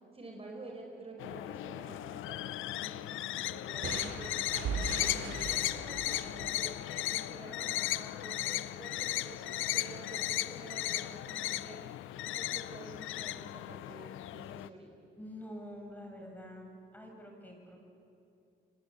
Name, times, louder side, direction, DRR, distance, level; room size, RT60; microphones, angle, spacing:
voice 1, 0.1-3.0 3.5-4.3 4.7-6.7 7.1-11.8 12.1-14.9, right 2 dB, 30° right, 1 dB, 4.8 m, -49 dB
sound 1, 1.2-14.7, left 14 dB, 85° left, 0.7 m, -36 dB
sound 2, 3.8-7.5, right 5 dB, 80° right, 2.7 m, -40 dB
voice 2, 15.2-17.8, equal, 10° left, 1 dB, 7.0 m, -47 dB
29.0 x 23.0 x 8.4 m, 2.7 s
cardioid pair, 90°, 20 cm